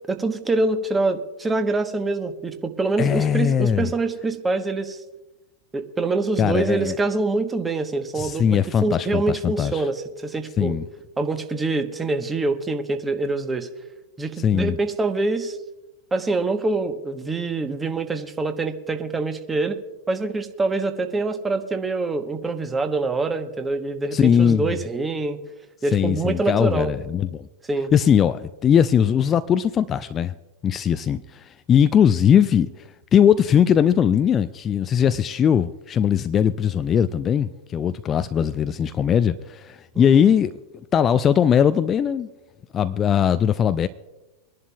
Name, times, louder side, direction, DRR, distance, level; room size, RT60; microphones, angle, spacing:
voice 1, 0.0-5.0 5.7-10.8 11.2-13.7 14.2-15.6 16.1-19.8 20.1-25.4 25.8-26.9 27.7-27.9 39.9-40.2, right 3 dB, 15° right, 1.1 m, -25 dB
voice 2, 3.0-3.9 6.4-6.9 8.1-9.8 10.6-10.9 14.4-14.8 24.1-24.7 25.9-27.5 27.9-30.3 30.6-40.5 40.9-42.3 42.7-43.9, left 8 dB, 25° left, 0.4 m, -20 dB
25.0 x 11.0 x 2.3 m
figure-of-eight pair, 90°, 0 cm